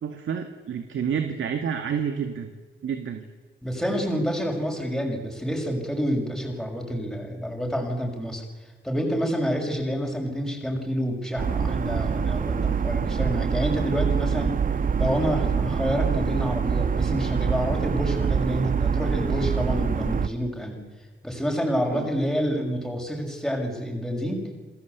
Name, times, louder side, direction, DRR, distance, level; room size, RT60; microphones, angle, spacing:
voice 1, 0.0-2.5 2.8-3.3 21.9-22.1, right 7 dB, 75° right, 6 dB, 2.1 m, -29 dB
voice 2, 3.6-8.4 8.8-14.6 14.9-20.8 21.2-24.5, equal, ahead, 1 dB, 6.3 m, -28 dB
sound 1, 11.4-20.3, right 6 dB, 40° right, 1.2 m, -25 dB
28.5 x 20.0 x 8.2 m, 1.4 s
wide cardioid pair, 140°, 21 cm